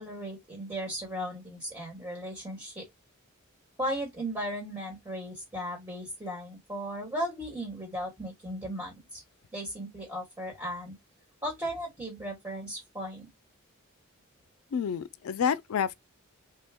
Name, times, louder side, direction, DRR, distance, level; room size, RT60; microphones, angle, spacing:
voice 1, 0.0-2.9 3.8-9.2 9.5-10.9 11.4-13.3, equal, 15° right, 1.3 m, -36 dB
voice 2, 14.7-15.9, left 7 dB, 85° left, 0.4 m, -29 dB
3.4 x 2.2 x 3.4 m
head